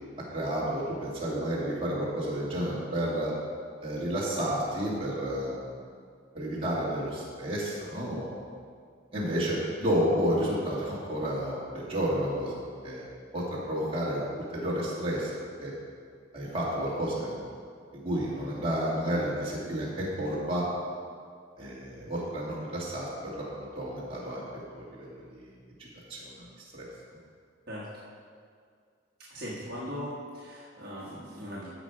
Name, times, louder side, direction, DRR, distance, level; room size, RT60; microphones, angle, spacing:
voice 1, 0.3-3.3 3.8-5.7 6.3-8.6 9.1-13.1 13.3-14.3 14.5-15.3 15.6-15.7 16.3-17.4 17.9-20.7 21.6-25.5 25.8-26.5 26.7-26.9, equal, 30° right, -7 dB, 2.2 m, -31 dB
voice 2, 29.3-31.7, equal, 50° right, -7 dB, 1.4 m, -39 dB
14.0 x 5.0 x 4.9 m, 2.1 s
head